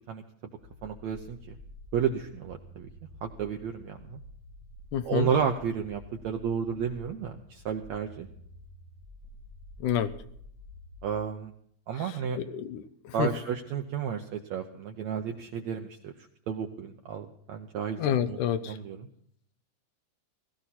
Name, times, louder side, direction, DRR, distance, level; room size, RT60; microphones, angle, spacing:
sound 1, 0.6-11.2, left 2 dB, 35° right, 1.4 m, -50 dB
voice 1, 0.8-1.6 1.9-2.9 3.2-4.2 5.0-8.3 11.0-11.5 11.9-12.4 13.1-18.4 18.7-19.1, right 7 dB, 85° right, 4 dB, 1.5 m, -32 dB
voice 2, 4.9-5.3 9.8-10.1 12.5-13.3 18.0-18.8, left 9 dB, 75° left, 10 dB, 2.0 m, -28 dB
17.0 x 16.5 x 4.2 m, 0.67 s
omnidirectional pair, 4.4 m